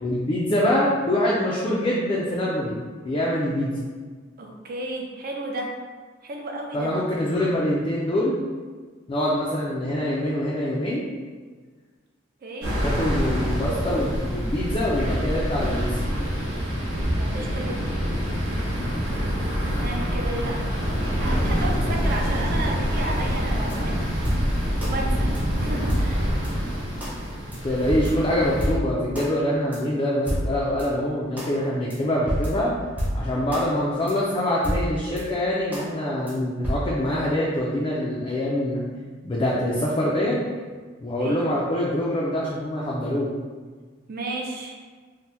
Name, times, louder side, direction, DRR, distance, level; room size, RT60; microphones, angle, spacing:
voice 1, 0.0-2.8 3.1-3.8 6.7-8.4 9.1-11.0 12.7-15.9 27.6-32.7 33.1-38.8 39.2-40.4 41.0-43.3, left 1 dB, 30° left, -5 dB, 0.3 m, -24 dB
voice 2, 4.4-5.7 6.2-7.0 12.4-12.7 17.2-18.0 19.8-20.7 21.2-24.4 24.8-26.3 41.2-41.4 44.1-44.8, right 2 dB, 50° right, 0 dB, 0.5 m, -33 dB
sound 1, 12.6-28.7, equal, 75° right, 1.0 m, -26 dB
sound 2, 23.7-24.9 25.3-25.4 25.9-26.5 27.0-27.1 27.5-27.6 27.9-29.3 29.7-29.8 30.3-30.9 31.4-31.5 31.9-32.0 32.3-33.7 34.1-34.2 34.6-35.2 35.7-35.9 36.3-36.4 36.6-36.7, equal, 10° right, 0.6 m, -29 dB
2.7 x 2.1 x 3.3 m, 1.5 s
head